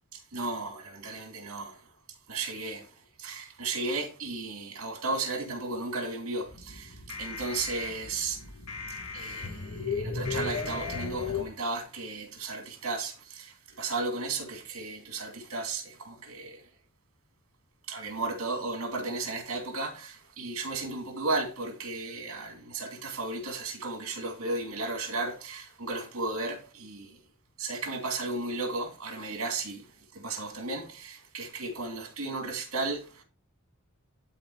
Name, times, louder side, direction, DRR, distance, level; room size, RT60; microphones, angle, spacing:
voice 1, 0.3-1.8 2.3-2.8 3.2-8.4 9.1-16.6 17.9-27.2 27.6-29.9 30.1-33.2, right 3 dB, 70° right, 2.6 m, -34 dB
sound 1, 6.5-11.4, left 4 dB, 85° left, 1.6 m, -35 dB
11.5 x 3.9 x 4.7 m
head